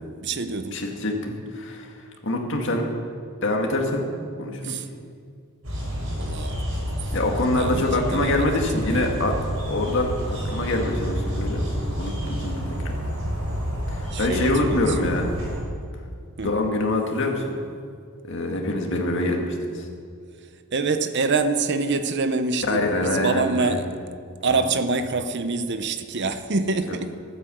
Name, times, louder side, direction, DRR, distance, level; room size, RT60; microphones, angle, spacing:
voice 1, 0.2-0.8 4.6-4.9 6.2-6.6 7.6-8.4 8.8-9.1 14.1-15.2 16.4-16.5 20.7-24.0 24.4-27.2, right 3 dB, 55° right, 10 dB, 0.8 m, -26 dB
voice 2, 0.7-1.9 2.2-2.9 3.4-4.1 4.4-4.8 7.1-9.3 9.7-11.7 12.0-13.0 13.9-15.3 16.4-17.6 18.3-19.8 22.7-23.9 24.5-24.6, left 2 dB, 60° left, 1 dB, 2.0 m, -25 dB
sound 1, 5.6-15.6, equal, 75° right, 4.3 m, -29 dB
13.0 x 9.4 x 7.7 m, 2.2 s
head